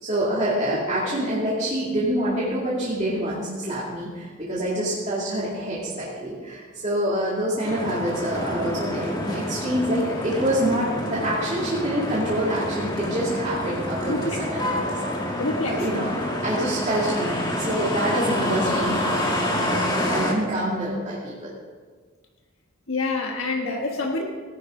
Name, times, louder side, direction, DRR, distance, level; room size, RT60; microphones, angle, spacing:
voice 1, 0.0-15.4 15.7-21.5, right 1 dB, 35° right, -8 dB, 2.3 m, -26 dB
sound 1, 7.6-20.3, left 1 dB, 20° left, 1.8 m, -28 dB
voice 2, 14.1-14.4 15.4-15.8 22.9-24.2, left 3 dB, 85° left, 1 dB, 1.3 m, -26 dB
17.5 x 10.5 x 3.8 m, 1.5 s
head